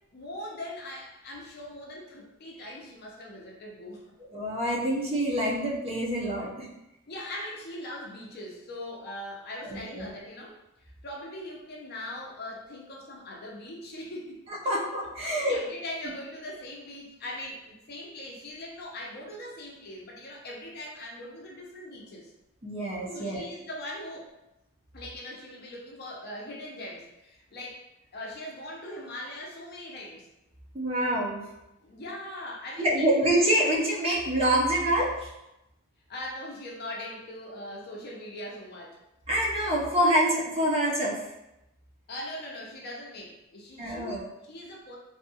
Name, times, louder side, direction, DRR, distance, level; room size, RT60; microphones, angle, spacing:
voice 1, 0.1-4.0 4.8-4.9 7.1-10.6 11.0-14.7 15.2-22.3 23.1-24.3 24.9-27.8 28.1-30.3 31.8-33.1 36.1-39.0 42.1-45.0, left 1 dB, 50° left, -2 dB, 0.5 m, -41 dB
voice 2, 4.3-6.7 9.7-10.1 14.7-15.6 22.6-23.4 30.7-31.4 32.8-35.3 39.3-41.2 43.8-44.3, right 1 dB, 30° right, -4 dB, 0.6 m, -26 dB
2.6 x 2.3 x 2.7 m, 0.90 s
head